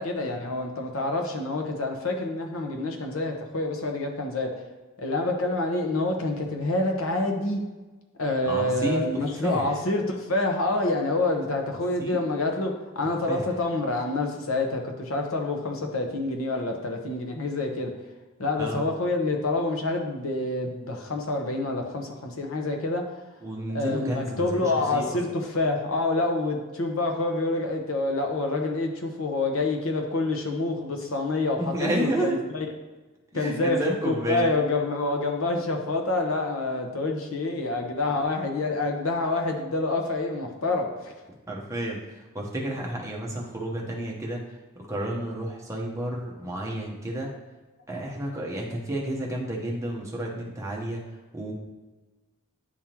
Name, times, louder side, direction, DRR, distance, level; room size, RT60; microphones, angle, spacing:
voice 1, 0.0-4.5 5.0-7.6 8.2-17.9 18.4-23.0 23.7-32.6 33.3-41.1, left 2 dB, 75° left, 2 dB, 1.0 m, -27 dB
voice 2, 8.5-9.8 12.0-12.2 13.3-13.5 18.6-18.8 23.4-25.2 31.6-32.4 33.3-34.5 41.5-47.3 47.9-51.0 51.3-51.5, right 1 dB, 15° right, -2 dB, 1.0 m, -31 dB
10.0 x 3.6 x 2.9 m, 1.2 s
head